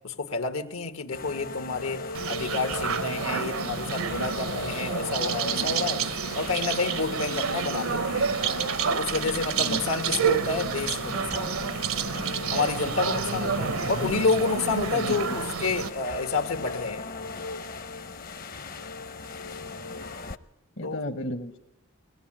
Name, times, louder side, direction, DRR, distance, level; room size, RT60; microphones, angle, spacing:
voice 1, 0.0-8.3 8.9-11.8 12.5-17.0 20.8-21.0, left 4 dB, 90° left, 1.7 m, -29 dB
sound 1, 1.1-20.4, left 3 dB, 45° left, 0.7 m, -38 dB
sound 2, 2.1-15.9, right 6 dB, 85° right, 0.9 m, -29 dB
voice 2, 14.9-15.4 20.8-21.6, equal, 60° left, 1.0 m, -33 dB
22.5 x 18.0 x 8.8 m
head